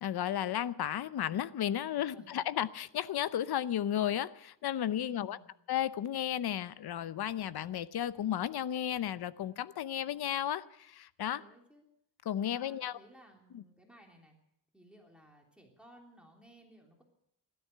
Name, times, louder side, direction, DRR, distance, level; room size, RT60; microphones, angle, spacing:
voice 1, 0.0-5.4 5.7-11.4 12.3-12.9 13.5-13.6, left 10 dB, 60° left, 0.8 m, -33 dB
voice 2, 1.9-2.4 5.0-5.5 11.3-11.9 12.5-14.4 14.7-17.0, right 1 dB, ahead, 3.4 m, -59 dB
16.5 x 13.0 x 6.7 m
cardioid pair, 110°, 42 cm